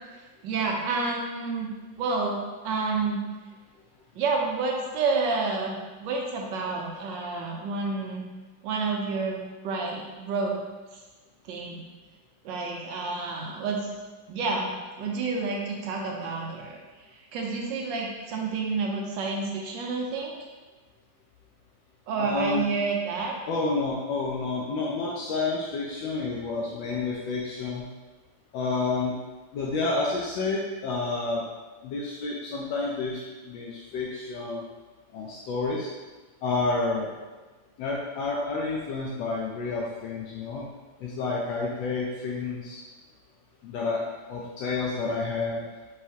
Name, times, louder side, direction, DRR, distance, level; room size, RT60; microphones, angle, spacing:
voice 1, 0.4-1.7 2.0-2.4 2.6-3.2 4.1-8.2 8.6-10.6 10.9-11.0 11.5-11.8 12.4-13.8 14.3-14.7 15.0-16.8 17.3-20.4 22.1-23.3, right 4 dB, 80° right, 0 dB, 1.3 m, -29 dB
voice 2, 22.2-22.6 23.5-27.8 28.5-29.1 29.5-31.4 31.8-34.6 35.1-35.9 36.4-37.1 37.8-40.7 41.0-42.8 43.6-44.0 44.3-45.6, left 3 dB, 80° left, -4 dB, 1.3 m, -29 dB
4.6 x 3.2 x 2.7 m, 1.3 s
omnidirectional pair, 2.1 m